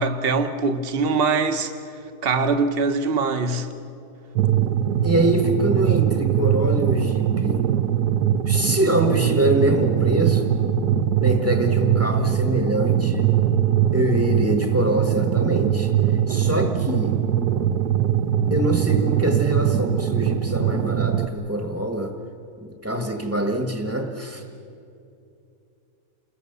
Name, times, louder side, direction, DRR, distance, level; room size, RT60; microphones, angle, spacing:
voice 1, 0.0-1.7 2.2-3.7, right 4 dB, 40° right, 7 dB, 1.3 m, -22 dB
sound 1, 4.4-21.3, right 10 dB, 85° right, 1.5 m, -21 dB
voice 2, 5.0-7.6 8.5-10.5 11.2-13.3 13.9-15.9 16.3-17.2 18.5-22.1 22.6-24.4, right 1 dB, 10° right, 3 dB, 1.4 m, -24 dB
28.5 x 21.5 x 6.9 m, 2.7 s
omnidirectional pair, 1.7 m